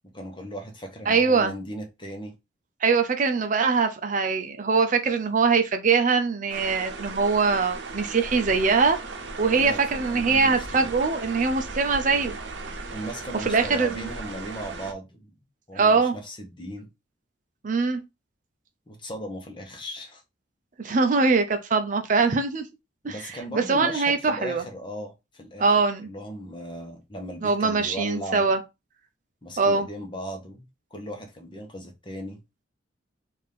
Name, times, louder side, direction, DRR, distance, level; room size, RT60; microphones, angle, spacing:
voice 1, 0.1-2.3 9.5-10.9 12.9-15.3 15.7-16.9 18.9-20.2 23.1-25.7 26.0-28.5 29.4-30.7 30.9-32.4, equal, 25° left, 1.0 m, -37 dB
voice 2, 1.1-1.5 2.8-9.0 9.4-12.3 13.4-13.9 15.8-16.1 17.6-18.0 20.8-22.6 23.0-23.2 23.5-24.6 25.6-26.1 27.4-28.6 29.6-29.9, right 4 dB, 45° right, 0.5 m, -22 dB
sound 1, 6.5-14.9, right 3 dB, 75° right, 0.7 m, -37 dB
4.2 x 2.6 x 3.5 m
head